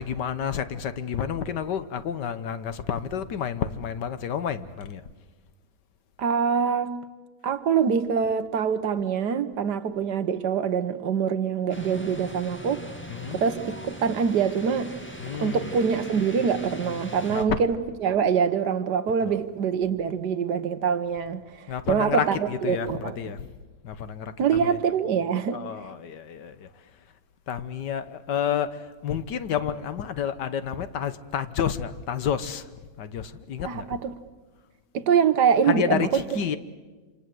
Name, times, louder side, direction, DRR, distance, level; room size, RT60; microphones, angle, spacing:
voice 1, 0.0-5.0 13.1-13.4 15.2-15.7 17.3-17.6 19.3-19.4 21.7-23.5 23.8-24.3 24.6-24.8 25.5-26.7 27.5-32.7 33.0-33.9 35.7-36.6, left 8 dB, 75° left, 1.7 m, -30 dB
voice 2, 6.2-6.9 7.4-12.8 13.3-13.6 13.9-14.9 15.4-23.2 24.4-25.6 33.6-34.1 34.9-36.4, right 7 dB, 70° right, 1.7 m, -24 dB
sound 1, 11.7-17.4, equal, 5° left, 1.9 m, -39 dB
27.5 x 27.5 x 7.8 m
omnidirectional pair, 1.9 m